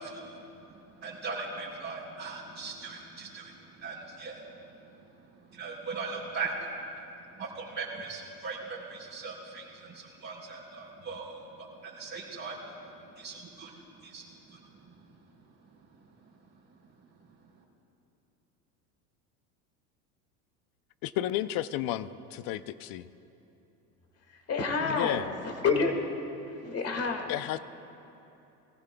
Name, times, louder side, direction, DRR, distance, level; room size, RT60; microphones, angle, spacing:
voice 1, 0.0-5.0 5.5-6.7 7.3-15.0, right 4 dB, 35° right, -7 dB, 3.3 m, -40 dB
voice 2, 21.0-23.1 24.8-25.3 27.3-27.6, left 13 dB, 50° left, 14 dB, 0.6 m, -32 dB
voice 3, 24.3-25.9 26.5-27.4, left 4 dB, 30° left, 3 dB, 2.0 m, -29 dB
23.0 x 15.0 x 2.3 m, 3.0 s
hypercardioid pair, 95°, 47 cm